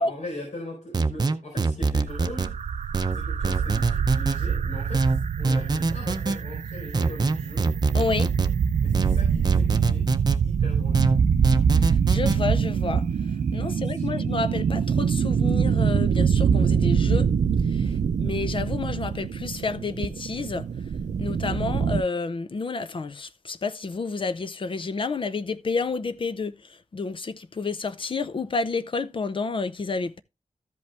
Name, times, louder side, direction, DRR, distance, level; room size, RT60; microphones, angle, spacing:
voice 1, 0.0-2.6 3.1-7.7 8.8-10.1 10.4-11.1 13.6-14.2 17.8-18.0, left 1 dB, 80° left, 4.4 m, -40 dB
sound 1, 0.9-2.5 2.9-4.4 4.9-6.4 6.9-8.5 8.9-10.4 10.9-12.4, right 3 dB, 35° right, 0.6 m, -24 dB
sound 2, 2.1-22.0, right 6 dB, 85° right, 0.5 m, -24 dB
voice 2, 7.9-8.3 12.1-13.0 13.5-17.3 18.2-20.7 21.2-26.5 26.9-30.2, left 4 dB, 45° left, 0.7 m, -29 dB
13.5 x 5.4 x 3.4 m
wide cardioid pair, 145°, 12 cm